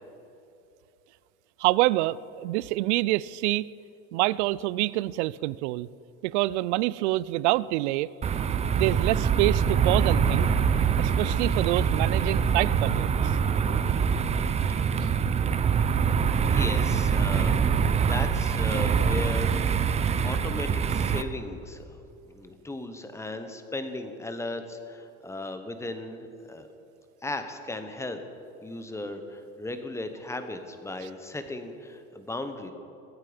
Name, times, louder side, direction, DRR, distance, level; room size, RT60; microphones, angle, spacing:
voice 1, 1.6-3.7 4.1-5.9 6.2-8.1 8.7-10.5 11.0-13.3 15.0-15.1, right 18 dB, 90° right, 21 dB, 0.5 m, -26 dB
sound 1, 8.2-21.2, right 6 dB, 20° right, 0.5 m, -24 dB
voice 2, 16.5-19.7 20.0-22.0 22.3-26.7 27.2-28.2 28.6-32.7, left 2 dB, 10° left, 7 dB, 1.1 m, -36 dB
23.0 x 9.0 x 5.1 m, 2.7 s
supercardioid pair, 130°, 34 cm